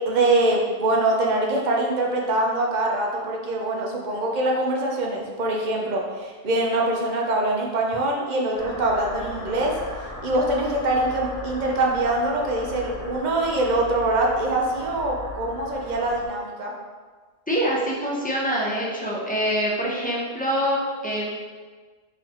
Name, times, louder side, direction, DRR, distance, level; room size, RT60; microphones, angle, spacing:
voice 1, 0.1-9.8 10.2-16.7, right 2 dB, 50° right, -1 dB, 0.6 m, -24 dB
sound 1, 8.5-16.3, left 2 dB, 75° left, 1.2 m, -37 dB
voice 2, 17.5-21.3, equal, 10° left, -5 dB, 0.5 m, -25 dB
4.0 x 2.9 x 2.8 m, 1.4 s
omnidirectional pair, 1.1 m